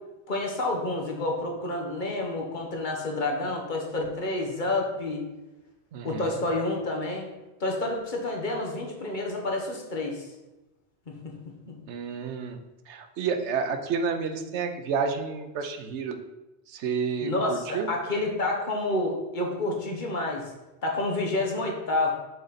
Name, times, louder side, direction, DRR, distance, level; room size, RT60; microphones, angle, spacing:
voice 1, 0.3-5.2 6.0-7.3 7.6-10.3 11.1-11.3 11.7-11.8 17.2-20.5 20.8-22.1, left 2 dB, 45° left, 0 dB, 1.1 m, -29 dB
voice 2, 5.9-6.3 11.9-12.6 12.9-16.2 16.7-17.9, right 5 dB, 90° right, 6 dB, 1.0 m, -30 dB
6.7 x 4.0 x 4.0 m, 1.0 s
omnidirectional pair, 1.1 m